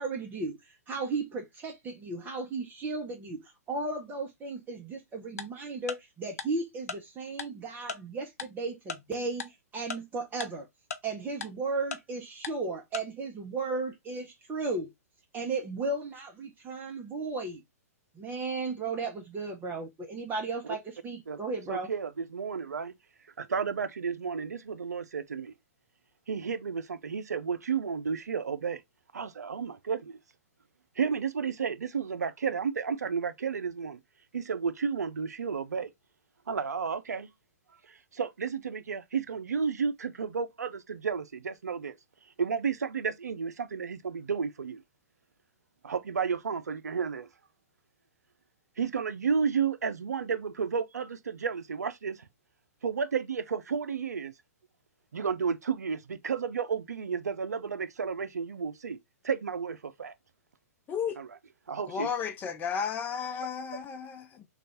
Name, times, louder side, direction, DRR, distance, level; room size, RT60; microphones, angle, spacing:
voice 1, 0.0-10.7 11.0-14.9 15.3-17.6 18.1-21.9, right 3 dB, 20° right, 0.8 m, -35 dB
Tick-tock, 5.4-5.5 5.9-6.0 6.4-6.5 6.9-7.0 7.4-7.5 7.9-8.0 8.4-8.5 8.9-9.0 9.4-9.5 9.9-10.0 10.4-10.5 10.9-11.0 11.4-11.5 11.9-12.0 12.4-12.5 12.9-13.0, left 6 dB, 70° left, 0.6 m, -35 dB
voice 2, 21.7-22.9 23.4-25.5 26.3-28.8 29.1-30.2 31.0-34.0 34.3-35.9 36.5-37.3 37.9-41.9 42.4-44.8 45.8-47.3 48.8-52.3 52.8-54.3 55.1-59.0 59.2-60.1 61.2-61.3 61.7-62.1, right 6 dB, 85° right, 0.5 m, -32 dB
voice 3, 61.9-64.4, left 7 dB, 20° left, 0.5 m, -33 dB
3.2 x 2.4 x 3.9 m
hypercardioid pair, 120°, 9 cm